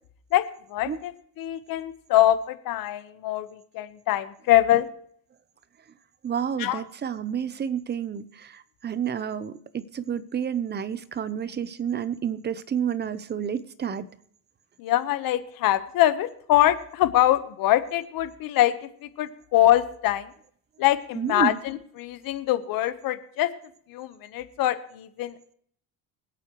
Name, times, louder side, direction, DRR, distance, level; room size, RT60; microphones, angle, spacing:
voice 1, 0.3-4.9 6.6-6.8 14.8-20.3 20.8-23.5 23.9-25.5, left 13 dB, 60° left, 12 dB, 1.2 m, -24 dB
voice 2, 6.2-14.1 21.1-21.6, right 8 dB, 25° right, 15 dB, 0.8 m, -30 dB
24.5 x 8.4 x 3.1 m, 0.63 s
cardioid pair, 140°, 39 cm